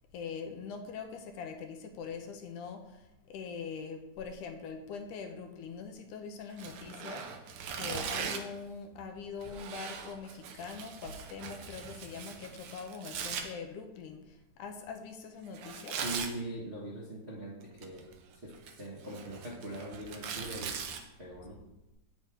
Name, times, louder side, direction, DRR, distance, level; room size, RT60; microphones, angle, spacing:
voice 1, 0.1-7.4 7.7-16.0, left 5 dB, 80° left, 4 dB, 2.4 m, -43 dB
Tearing, 6.5-8.6 9.4-13.4 15.5-16.3 17.6-18.1 18.5-21.0, right 6 dB, 70° right, 1.3 m, -40 dB
voice 2, 16.0-18.1 18.3-20.8 21.2-21.6, right 1 dB, 35° right, -6 dB, 1.1 m, -41 dB
9.0 x 8.7 x 3.7 m, 0.95 s
omnidirectional pair, 3.6 m